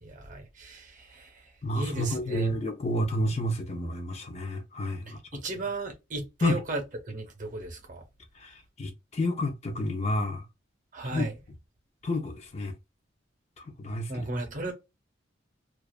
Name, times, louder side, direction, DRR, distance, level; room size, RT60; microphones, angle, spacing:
voice 1, 0.0-2.5 5.1-5.2 5.4-8.0 10.9-11.4 14.1-14.7, right 2 dB, 45° right, 0.8 m, -35 dB
voice 2, 1.6-5.2 6.4-6.6 8.4-10.5 11.1-11.2 12.0-12.7 13.6-14.3, left 1 dB, 35° left, 0.5 m, -30 dB
2.4 x 2.3 x 2.3 m
head